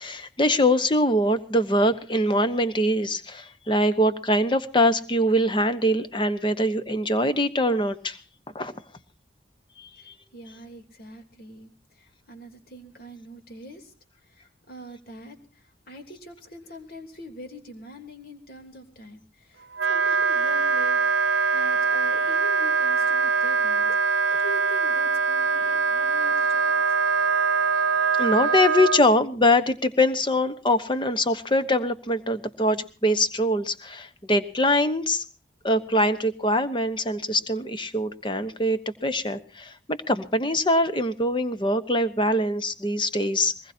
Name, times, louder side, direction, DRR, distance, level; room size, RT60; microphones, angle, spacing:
voice 1, 0.0-8.2 8.5-8.7 9.8-10.1 28.2-35.2 35.6-43.7, left 1 dB, 25° left, 10 dB, 1.1 m, -23 dB
voice 2, 10.0-13.9 14.2-26.7, equal, 55° left, 4 dB, 3.2 m, -44 dB
Wind instrument woodwind instrument, 19.7-29.0, right 5 dB, 80° right, 0.8 m, -23 dB
22.5 x 20.5 x 2.8 m, 0.36 s
head